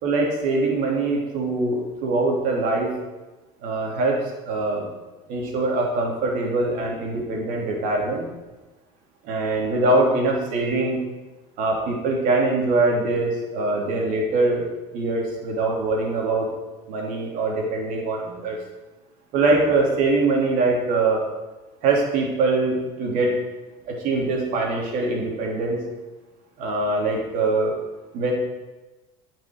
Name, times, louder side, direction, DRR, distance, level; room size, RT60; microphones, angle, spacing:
voice 1, 0.0-2.9 3.6-4.9 5.3-8.3 9.2-11.0 11.6-16.5 16.9-18.6 19.3-21.2 21.8-23.4 23.9-25.8 26.6-27.7 28.1-28.3, right 2 dB, 65° right, 0 dB, 3.2 m, -23 dB
9.4 x 6.1 x 7.7 m, 1.1 s
supercardioid pair, 105°, 15 cm